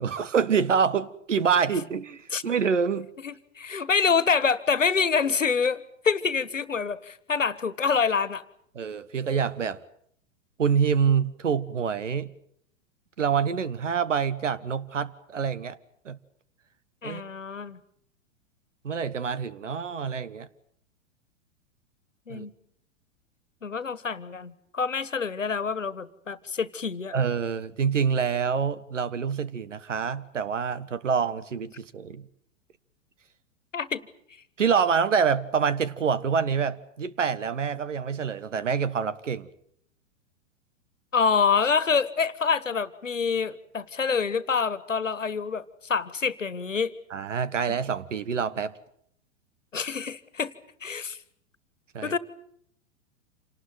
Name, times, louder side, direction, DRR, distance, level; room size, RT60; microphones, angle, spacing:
voice 1, 0.0-3.1 8.7-9.8 10.6-12.3 13.2-15.8 16.0-16.2 17.0-17.2 18.8-20.5 22.3-22.5 27.1-32.3 34.6-39.5 47.1-48.8 51.9-52.2, right 6 dB, 75° right, 1.6 m, -26 dB
voice 2, 3.2-8.4 17.0-17.8 22.3-22.5 23.6-27.1 33.7-34.0 41.1-46.9 49.7-50.5 50.8-51.2 52.0-52.2, left 5 dB, 80° left, 1.7 m, -26 dB
27.5 x 19.0 x 9.2 m
figure-of-eight pair, 100°, 37 cm